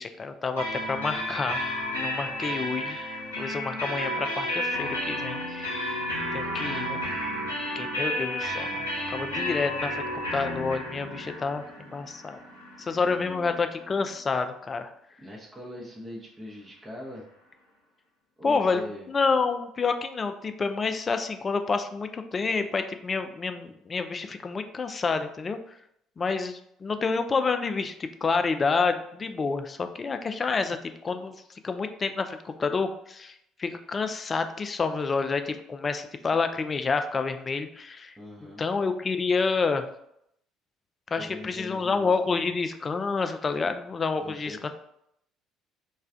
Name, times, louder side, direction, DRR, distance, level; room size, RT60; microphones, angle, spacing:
voice 1, 0.0-1.6 2.0-6.1 6.3-7.0 7.8-10.0 10.3-12.4 12.8-14.9 18.4-25.6 26.2-31.4 31.6-38.1 38.6-39.9 41.1-44.7, left 4 dB, 30° left, 8 dB, 0.3 m, -29 dB
sound 1, 0.6-14.1, left 1 dB, 80° left, 0.7 m, -32 dB
voice 2, 13.0-13.6 15.2-17.2 18.4-19.1 38.2-38.6 41.2-42.5 44.2-44.7, left 1 dB, 20° right, -3 dB, 0.7 m, -42 dB
3.1 x 2.3 x 3.6 m, 0.75 s
figure-of-eight pair, 55°, 0 cm